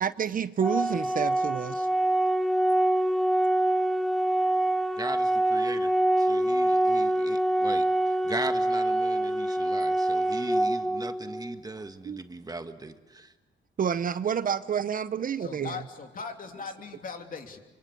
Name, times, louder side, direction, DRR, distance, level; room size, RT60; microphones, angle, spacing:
voice 1, 0.0-1.9 12.0-12.2 13.8-15.8, right 8 dB, 45° right, 14 dB, 0.8 m, -29 dB
Organ, 0.6-11.6, right 1 dB, ahead, 1.0 m, -25 dB
voice 2, 5.0-13.3, right 2 dB, 20° right, 8 dB, 1.6 m, -39 dB
voice 3, 15.4-17.6, left 5 dB, 45° left, 4 dB, 3.0 m, -39 dB
25.5 x 24.5 x 8.4 m, 1.2 s
cardioid pair, 90°, 20 cm